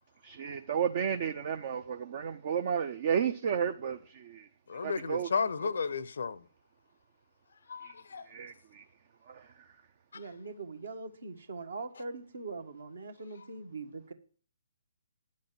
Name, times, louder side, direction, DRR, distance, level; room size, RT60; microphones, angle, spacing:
voice 1, 0.2-4.5 4.8-5.3 7.8-7.9 8.3-8.8 9.3-9.4, right 7 dB, 40° right, 0.7 m, -32 dB
voice 2, 4.7-6.4 7.7-8.2, left 5 dB, 55° left, 0.6 m, -33 dB
voice 3, 10.1-14.1, right 3 dB, 60° right, 1.6 m, -42 dB
10.5 x 7.5 x 7.5 m
figure-of-eight pair, 130°, 0 cm